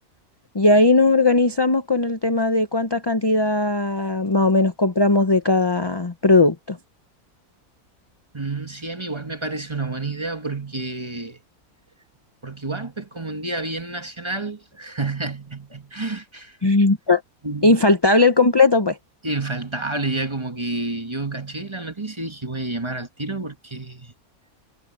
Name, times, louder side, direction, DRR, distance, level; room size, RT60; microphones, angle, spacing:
voice 1, 0.5-6.8 16.6-17.2 17.6-19.0, left 2 dB, 25° left, 0.6 m, -18 dB
voice 2, 8.3-11.4 12.4-16.8 17.4-17.8 19.2-24.1, right 2 dB, 20° right, 1.4 m, -29 dB
omnidirectional pair, 1.6 m